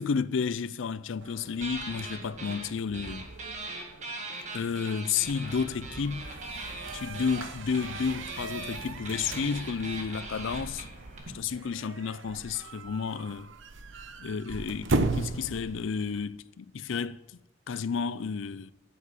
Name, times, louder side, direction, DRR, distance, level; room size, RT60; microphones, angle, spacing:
voice 1, 0.0-3.3 4.5-6.4 6.9-10.9 11.3-13.5 14.2-17.2 17.7-18.7, left 6 dB, 75° left, 0.5 m, -31 dB
sound 1, 1.2-16.2, right 3 dB, 70° right, 0.8 m, -38 dB
sound 2, 1.6-2.7 2.9-11.2, right 2 dB, 35° right, 1.9 m, -40 dB
sound 3, 5.2-11.4, right 1 dB, 85° right, 2.0 m, -46 dB
8.8 x 8.3 x 8.5 m
head